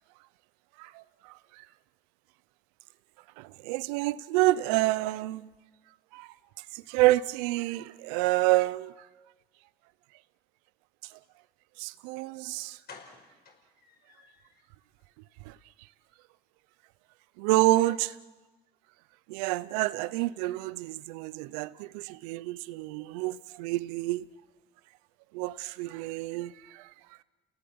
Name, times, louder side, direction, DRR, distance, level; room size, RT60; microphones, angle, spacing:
voice 1, 0.8-1.3 3.4-5.5 6.1-6.3 6.7-8.9 11.8-12.8 15.5-15.6 17.4-18.2 19.3-24.2 25.3-26.9, right 18 dB, 90° right, 0.7 m, -28 dB
sound 1, 12.2-12.3 12.9-14.6 15.0-15.1 15.5-15.6 15.9-16.0, left 4 dB, 55° left, 5.7 m, -52 dB
30.0 x 18.5 x 8.7 m
supercardioid pair, 65°, 19 cm